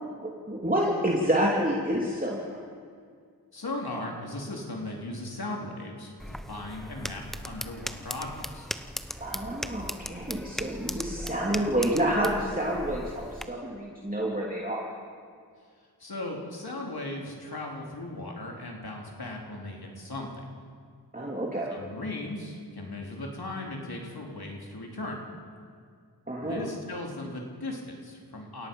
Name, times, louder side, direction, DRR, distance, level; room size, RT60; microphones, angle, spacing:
voice 1, 0.2-2.6 9.2-14.9 21.1-21.7 26.3-26.6, right 1 dB, 20° right, -3 dB, 2.9 m, -28 dB
voice 2, 3.5-8.7 16.0-20.3 21.7-25.2 26.4-28.7, left 2 dB, 65° left, 0 dB, 3.8 m, -37 dB
sound 1, 6.2-13.4, equal, ahead, 0.9 m, -38 dB
29.0 x 17.5 x 5.5 m, 2.1 s
cardioid pair, 50°, 40 cm